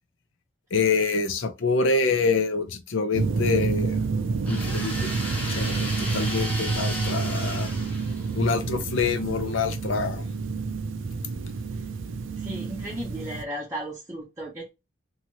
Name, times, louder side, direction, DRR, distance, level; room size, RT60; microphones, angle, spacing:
voice 1, 0.7-4.0 4.4-5.2 5.5-7.7 8.3-10.2, left 4 dB, 75° left, 0.6 m, -26 dB
sound 1, 3.1-13.4, right 4 dB, 70° right, 0.4 m, -29 dB
sound 2, 4.4-8.6, left 1 dB, 10° left, 0.9 m, -35 dB
voice 2, 12.4-14.7, right 1 dB, 15° right, 0.7 m, -35 dB
3.0 x 2.7 x 2.7 m
head